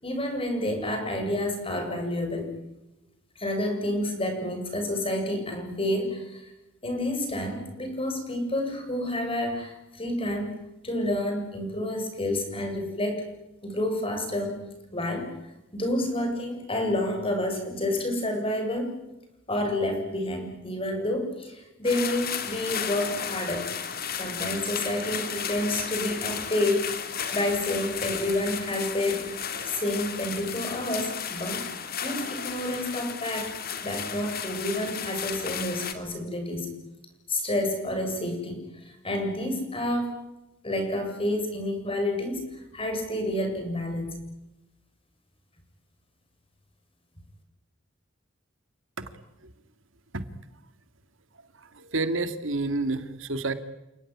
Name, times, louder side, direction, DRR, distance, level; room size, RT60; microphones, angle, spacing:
voice 1, 0.0-2.5 3.4-6.5 6.8-10.6 10.8-13.2 13.6-14.6 14.9-15.3 15.7-18.9 19.5-23.7 24.2-27.0 27.3-31.7 32.0-33.6 33.8-36.7 37.3-40.2 40.6-44.2, left 1 dB, 30° left, 5 dB, 7.4 m, -29 dB
sound 1, 21.8-35.9, left 7 dB, 50° left, 2.8 m, -34 dB
voice 2, 51.6-53.5, right 2 dB, 80° right, 10 dB, 2.2 m, -29 dB
30.0 x 18.5 x 10.0 m, 0.94 s
head